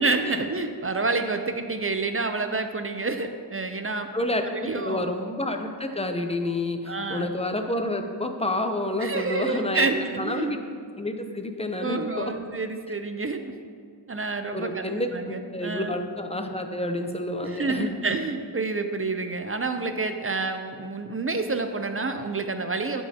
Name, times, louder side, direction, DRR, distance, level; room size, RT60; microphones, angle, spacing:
voice 1, 0.0-4.1 4.5-5.1 6.9-7.3 9.0-10.6 11.8-13.5 14.1-14.8 15.1-15.9 17.4-23.0, right 3 dB, 30° right, 7 dB, 0.5 m, -28 dB
voice 2, 4.7-9.9 10.2-10.6 11.0-12.3 14.5-18.0, left 1 dB, 15° left, 5 dB, 0.7 m, -29 dB
12.5 x 5.4 x 2.9 m, 2.1 s
wide cardioid pair, 55°, 44 cm